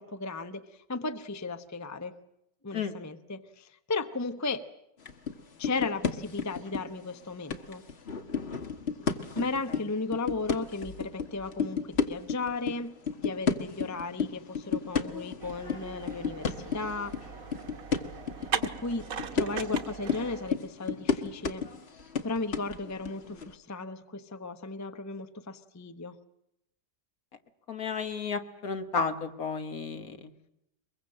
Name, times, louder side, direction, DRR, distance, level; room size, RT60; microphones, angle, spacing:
voice 1, 0.0-2.2 2.6-4.7 5.6-7.8 9.3-13.0 13.2-17.2 18.6-19.1 19.3-21.6 22.2-26.2, left 3 dB, 15° left, 10 dB, 0.6 m, -35 dB
sound 1, 5.1-5.3 5.6-7.1 7.5-12.7 13.1-23.5, left 6 dB, 40° left, 1.4 m, -32 dB
sound 2, 15.4-20.5, right 7 dB, 60° right, 1.5 m, -39 dB
voice 2, 27.7-30.2, left 5 dB, 60° left, 7 dB, 1.8 m, -32 dB
23.0 x 22.0 x 7.7 m, 0.82 s
omnidirectional pair, 1.8 m